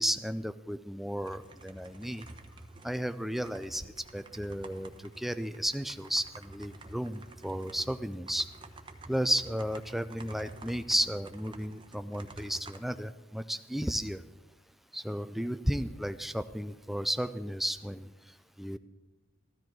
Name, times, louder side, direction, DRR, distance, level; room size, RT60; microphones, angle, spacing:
voice 1, 0.0-2.3 2.8-4.9 5.2-8.5 9.1-14.2 14.9-18.1 18.6-18.8, equal, ahead, 11 dB, 0.3 m, -33 dB
sound 1, 1.2-12.8, right 2 dB, 25° right, 1.0 m, -50 dB
14.5 x 13.0 x 4.6 m, 1.1 s
head